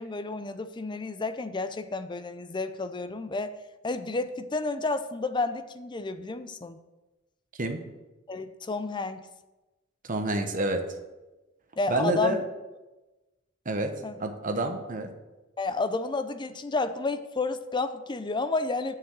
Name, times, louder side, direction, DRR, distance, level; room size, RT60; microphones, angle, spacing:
voice 1, 0.0-3.5 3.8-6.8 8.3-9.3 11.8-12.4 14.0-14.1 15.6-18.9, left 3 dB, 25° left, 11 dB, 0.5 m, -31 dB
voice 2, 10.0-10.8 11.9-12.4 13.6-13.9 14.2-15.1, right 2 dB, 40° right, 5 dB, 1.1 m, -28 dB
6.8 x 6.8 x 7.6 m, 1.1 s
head